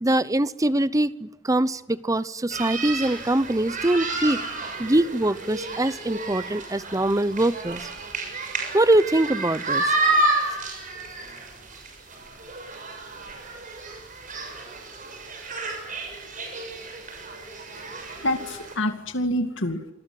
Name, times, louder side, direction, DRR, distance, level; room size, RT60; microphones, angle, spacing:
voice 1, 0.0-4.4 4.8-7.9 8.7-10.0, right 1 dB, 15° right, 16 dB, 0.8 m, -23 dB
sound 1, 2.5-18.8, right 2 dB, 40° right, 6.9 m, -30 dB
voice 2, 18.2-19.9, left 1 dB, 65° left, 6 dB, 2.4 m, -27 dB
27.5 x 20.5 x 7.8 m, 0.98 s
head